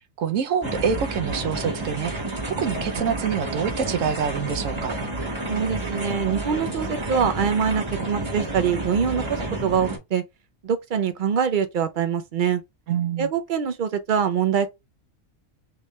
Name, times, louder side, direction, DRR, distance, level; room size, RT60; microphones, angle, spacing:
voice 1, 0.0-2.1 2.6-4.9 12.9-13.3, right 7 dB, 75° right, 1.0 m, -26 dB
sound 1, 0.6-10.0, right 2 dB, 25° right, 1.1 m, -30 dB
voice 2, 5.5-10.2 10.6-12.6 13.2-14.7, right 7 dB, 55° right, 0.6 m, -24 dB
3.5 x 3.2 x 3.0 m
omnidirectional pair, 1.4 m